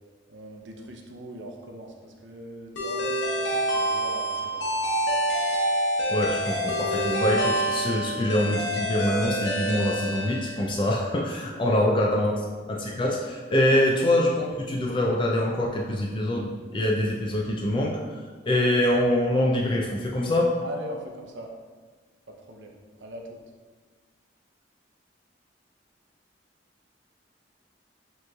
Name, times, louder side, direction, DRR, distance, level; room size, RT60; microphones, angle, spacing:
voice 1, 0.3-5.1 11.5-12.2 13.7-13.8 20.6-21.5 22.3-22.8 23.0-23.4, equal, 75° right, 2 dB, 0.6 m, -41 dB
sound 1, 2.8-10.9, right 1 dB, 75° left, 1.0 m, -27 dB
voice 2, 6.1-12.3 12.7-18.0 18.5-20.5, left 1 dB, 25° left, -1 dB, 0.4 m, -24 dB
7.5 x 3.0 x 2.3 m, 1.5 s
head